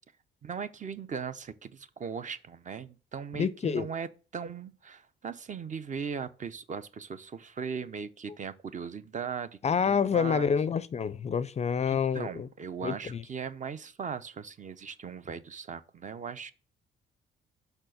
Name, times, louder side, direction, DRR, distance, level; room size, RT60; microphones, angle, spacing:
voice 1, 0.4-9.5 9.8-10.5 11.8-16.5, right 6 dB, 40° right, 0.6 m, -38 dB
voice 2, 3.3-3.9 9.6-12.5 12.8-13.2, left 6 dB, 35° left, 0.4 m, -28 dB
5.9 x 4.4 x 6.2 m
cardioid pair, 90°, 20 cm